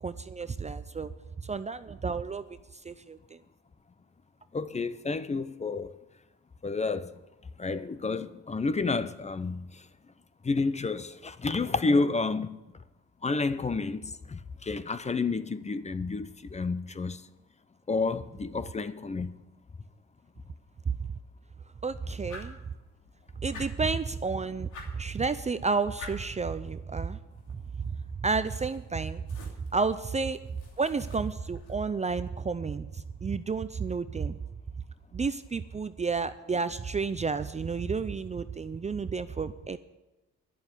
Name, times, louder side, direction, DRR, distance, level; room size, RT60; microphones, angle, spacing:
voice 1, 0.0-1.1 1.4-2.6 2.8-3.4 21.8-22.6 23.4-27.2 28.2-29.2 29.7-30.4 30.8-34.4 35.1-39.8, right 4 dB, 25° right, 0.5 m, -31 dB
voice 2, 4.5-5.9 6.6-7.1 7.6-9.9 10.4-12.6 13.2-17.2 17.9-19.3, left 3 dB, 20° left, 0.7 m, -30 dB
sound 1, 22.2-31.8, left 3 dB, 85° left, 2.9 m, -50 dB
11.0 x 7.1 x 9.6 m
cardioid pair, 90°, 30 cm